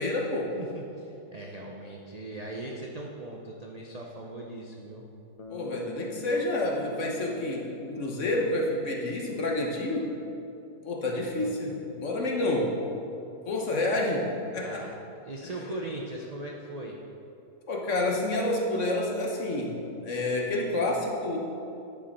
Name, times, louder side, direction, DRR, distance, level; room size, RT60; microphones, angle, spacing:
voice 1, 0.0-0.5 5.5-10.1 10.8-12.7 13.5-14.8 17.7-19.8 20.0-21.4, left 2 dB, 50° left, 0 dB, 1.3 m, -29 dB
voice 2, 0.5-5.1 11.1-11.5 14.6-14.9 15.2-17.0, right 2 dB, 50° right, -1 dB, 0.4 m, -39 dB
Bass guitar, 5.4-9.6, left 2 dB, 35° left, 0.6 m, -47 dB
10.0 x 6.0 x 5.4 m, 2.7 s
omnidirectional pair, 1.8 m